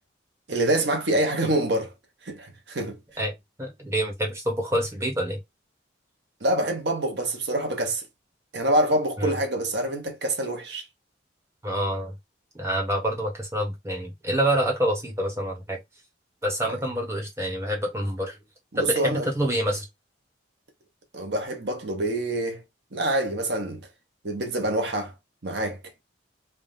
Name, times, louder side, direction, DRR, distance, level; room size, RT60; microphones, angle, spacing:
voice 1, 0.5-1.9 2.2-3.0 6.4-8.0 8.5-10.8 16.7-16.8 18.7-19.3 21.1-22.6 22.9-23.9 24.2-25.1 25.4-25.8, right 1 dB, 60° right, 1.1 m, -26 dB
voice 2, 3.2-5.4 9.2-9.3 11.6-12.1 12.5-15.8 16.4-18.4 18.8-19.9, right 1 dB, 15° right, 1.2 m, -27 dB
3.4 x 2.3 x 4.0 m
head